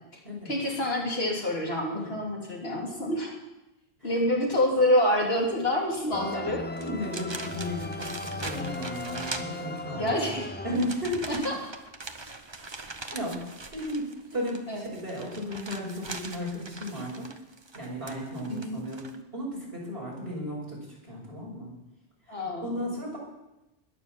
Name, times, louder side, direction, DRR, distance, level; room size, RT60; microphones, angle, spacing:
voice 1, 0.4-3.3 4.0-6.6 9.9-10.5 11.4-11.5 14.7-14.9 18.5-18.8 22.3-23.0, left 1 dB, 65° left, -2 dB, 3.3 m, -27 dB
sound 1, 6.1-11.4, left 2 dB, 15° left, 0.5 m, -37 dB
sound 2, 6.2-6.3 6.7-10.1 10.7-19.2, right 3 dB, 25° right, 0.9 m, -42 dB
voice 2, 6.8-10.4 10.6-11.4 13.1-17.3 17.7-21.7 22.3-23.2, equal, 65° right, -3 dB, 5.9 m, -35 dB
20.5 x 7.1 x 7.2 m, 0.97 s
omnidirectional pair, 1.1 m